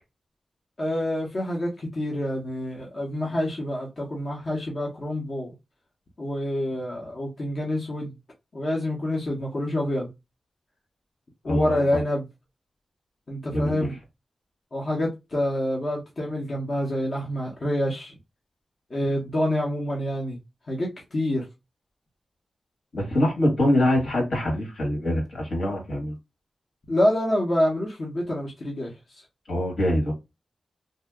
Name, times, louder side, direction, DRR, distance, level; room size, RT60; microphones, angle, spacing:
voice 1, 0.8-5.5 6.2-8.2 8.5-10.1 11.4-12.3 13.3-14.0 14.7-18.1 18.9-20.4 20.7-21.4 26.9-29.2, left 1 dB, 45° left, 0.8 m, -27 dB
voice 2, 11.4-11.9 13.5-13.9 22.9-26.1 29.5-30.1, left 1 dB, 75° left, 1.5 m, -24 dB
2.7 x 2.1 x 3.4 m
wide cardioid pair, 125°, 0 cm